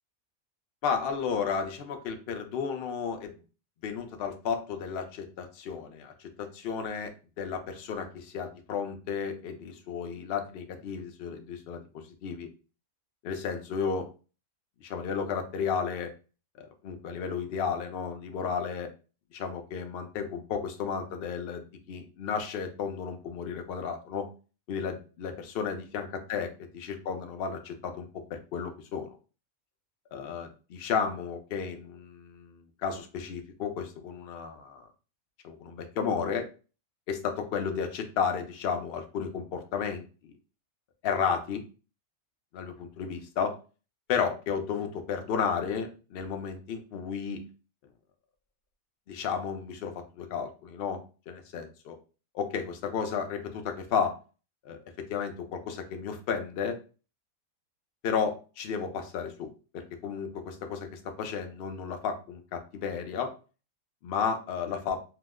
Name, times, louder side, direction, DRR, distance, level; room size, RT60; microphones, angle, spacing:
voice 1, 0.8-3.3 3.8-7.1 7.4-11.8 12.2-12.5 13.2-14.1 14.8-16.1 16.6-18.9 19.3-24.3 24.7-29.1 30.1-34.9 35.4-36.5 37.1-40.3 41.0-41.6 42.5-43.5 44.1-47.4 49.1-52.0 52.3-54.2 54.6-56.8 58.0-63.3 64.0-65.0, left 6 dB, 60° left, 5 dB, 0.7 m, -33 dB
2.9 x 2.0 x 3.5 m, 0.35 s
omnidirectional pair, 1.4 m